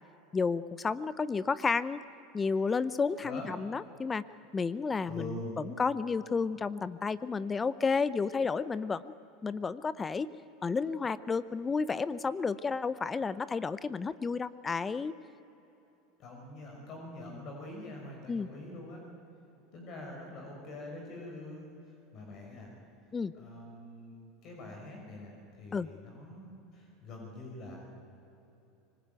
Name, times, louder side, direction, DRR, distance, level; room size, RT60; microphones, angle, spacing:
voice 1, 0.3-2.0 2.3-4.2 4.5-5.3 5.6-9.1 9.4-10.3 10.6-15.1 18.3-18.5 23.1-23.3 25.7-25.9, left 5 dB, 20° left, 16 dB, 0.7 m, -31 dB
voice 2, 3.2-3.5 5.0-5.6 16.2-19.0 19.7-22.7 23.3-27.8, left 2 dB, 50° left, 0 dB, 5.8 m, -44 dB
25.0 x 20.0 x 9.2 m, 3.0 s
hypercardioid pair, 90°, 0 cm